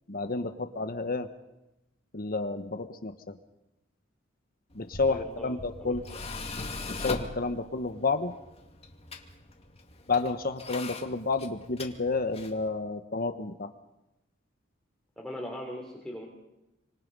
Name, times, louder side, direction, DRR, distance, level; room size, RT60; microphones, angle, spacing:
voice 1, 0.1-1.3 2.1-3.4 4.7-6.0 6.9-8.3 10.1-13.7, left 3 dB, 45° left, 8 dB, 1.3 m, -30 dB
Tools, 4.7-12.7, left 3 dB, 30° left, 2.4 m, -41 dB
voice 2, 5.1-5.9 15.2-16.3, equal, 5° left, -1 dB, 3.7 m, -40 dB
29.0 x 26.0 x 5.5 m, 0.93 s
head